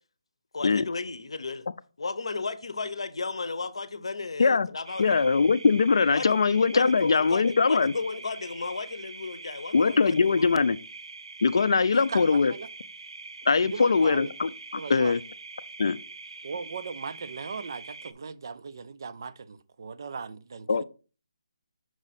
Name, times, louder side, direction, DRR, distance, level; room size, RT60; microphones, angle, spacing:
voice 1, 0.5-1.7 2.0-5.2 6.1-6.3 6.7-10.6, left 4 dB, 70° left, 0.8 m, -34 dB
sound 1, 4.8-18.1, right 3 dB, 80° right, 0.8 m, -44 dB
voice 2, 5.0-7.9 9.7-10.8 11.4-12.5 13.5-15.2 15.8-16.0 20.7-20.8, left 4 dB, 55° left, 0.4 m, -22 dB
voice 3, 11.9-12.7 13.6-14.3 14.8-15.2 16.4-20.8, right 5 dB, 40° right, 0.4 m, -38 dB
6.2 x 4.8 x 4.1 m
hypercardioid pair, 175°, 3 cm